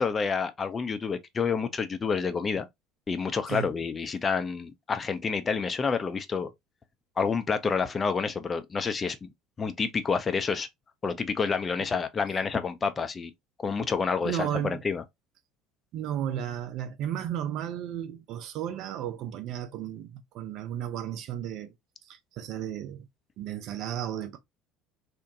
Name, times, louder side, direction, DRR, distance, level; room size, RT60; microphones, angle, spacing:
voice 1, 0.0-2.7 3.1-6.5 7.2-9.3 9.6-10.7 11.0-13.3 13.6-15.0, left 5 dB, 25° left, 0.4 m, -28 dB
voice 2, 14.2-14.8 15.9-21.7 22.0-23.1 23.4-24.4, right 10 dB, 50° right, 0.5 m, -34 dB
2.9 x 2.1 x 2.6 m
figure-of-eight pair, 60°, 0 cm